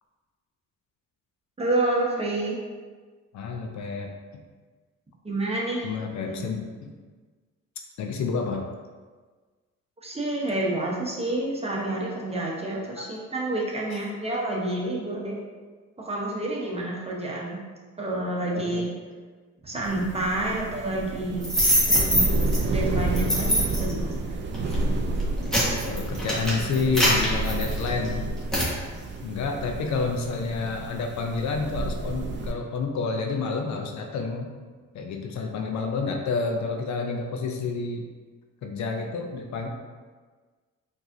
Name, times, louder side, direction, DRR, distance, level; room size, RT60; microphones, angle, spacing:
voice 1, 1.6-2.6 5.2-5.9 6.2-6.4 10.0-15.4 16.0-17.6 18.0-18.9 19.6-21.4 21.9-22.3 22.7-24.3, right 1 dB, 20° right, -3 dB, 0.9 m, -29 dB
voice 2, 3.3-4.1 5.8-6.9 8.0-8.6 13.0-13.1 18.5-18.8 25.9-28.2 29.2-34.5 34.9-38.0 38.6-39.7, left 4 dB, 70° left, 3 dB, 0.6 m, -29 dB
sound 1, 19.8-32.5, right 2 dB, 40° right, 0.4 m, -30 dB
sound 2, 21.4-22.6 23.1-23.9 24.5-24.8 25.2-28.1 28.5-28.7, equal, ahead, 1.3 m, -23 dB
4.6 x 2.7 x 2.6 m, 1.4 s
cardioid pair, 90°, 30 cm